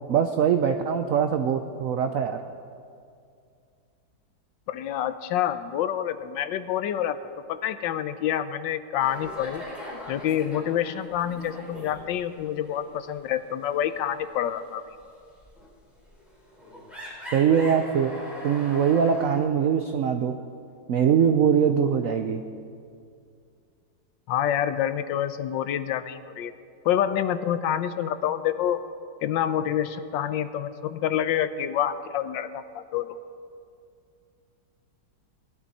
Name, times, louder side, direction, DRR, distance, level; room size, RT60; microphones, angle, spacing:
voice 1, 0.1-2.4 17.3-18.1 18.4-20.4 20.9-22.4, right 7 dB, 65° right, 7 dB, 0.8 m, -22 dB
voice 2, 4.7-7.2 7.5-9.6 10.1-14.8 24.3-26.5 26.8-28.8 29.2-33.2, left 10 dB, 85° left, 11 dB, 1.4 m, -27 dB
sound 1, 9.0-12.3 12.6-12.8 13.2-19.4, left 1 dB, ahead, 4.3 m, -41 dB
20.5 x 13.0 x 4.2 m, 2.3 s
omnidirectional pair, 2.0 m